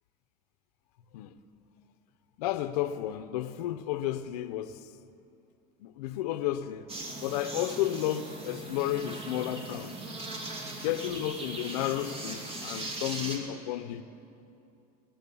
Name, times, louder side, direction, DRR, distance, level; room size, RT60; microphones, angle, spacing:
voice 1, 2.4-4.9 5.8-6.9 7.2-9.9 10.8-14.0, left 12 dB, 80° left, 0.7 m, -32 dB
sound 1, 6.9-13.4, right 2 dB, 30° right, 2.5 m, -39 dB
20.5 x 7.7 x 7.0 m
supercardioid pair, 100°, 20 cm